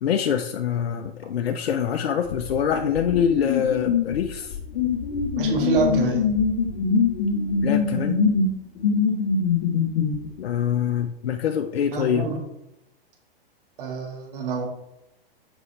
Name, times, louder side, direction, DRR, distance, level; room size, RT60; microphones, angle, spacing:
voice 1, 0.0-4.6 7.6-8.2 10.4-12.3, left 8 dB, 90° left, 6 dB, 0.6 m, -25 dB
sound 1, 2.3-10.3, left 5 dB, 60° left, 1.3 m, -23 dB
voice 2, 5.4-6.2 11.9-12.4 13.8-14.7, right 4 dB, 60° right, 1 dB, 1.9 m, -26 dB
7.9 x 5.4 x 3.3 m, 0.86 s
hypercardioid pair, 140°, 30 cm